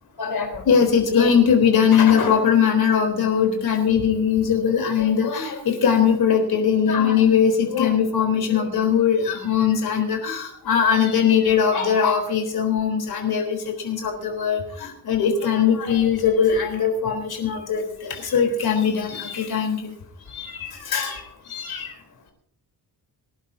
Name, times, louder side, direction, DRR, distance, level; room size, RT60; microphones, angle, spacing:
voice 1, 0.2-19.9 20.3-22.0, left 7 dB, 70° left, 3 dB, 4.0 m, -21 dB
24.5 x 11.5 x 2.8 m, 0.64 s
wide cardioid pair, 155°, 39 cm